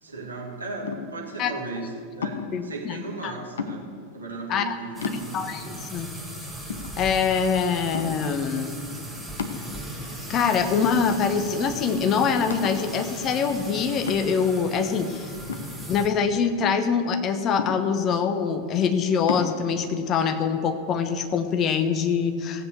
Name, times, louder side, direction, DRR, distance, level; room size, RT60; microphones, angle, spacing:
voice 1, 0.0-5.4 5.7-5.8, right 3 dB, 75° right, 0 dB, 2.2 m, -36 dB
sound 1, 0.8-1.3 2.2-2.7 3.6-4.1 4.6-4.7 5.0-5.7 6.2-6.3 6.7-7.4 7.9-8.3 9.4-10.1 10.8-11.5 11.8-11.9 12.5-12.9 14.1-14.6 15.5-16.4 17.6-18.2 19.3-19.6, left 6 dB, 65° left, 1.1 m, -33 dB
voice 2, 2.5-3.3 4.5-4.7 5.3-6.1 7.0-8.8 10.3-15.3 15.9-22.7, left 6 dB, 30° left, 8 dB, 1.0 m, -24 dB
sound 2, 4.9-16.1, right 1 dB, ahead, 2.1 m, -38 dB
15.5 x 8.1 x 6.9 m, 2.1 s
figure-of-eight pair, 90°, 0 cm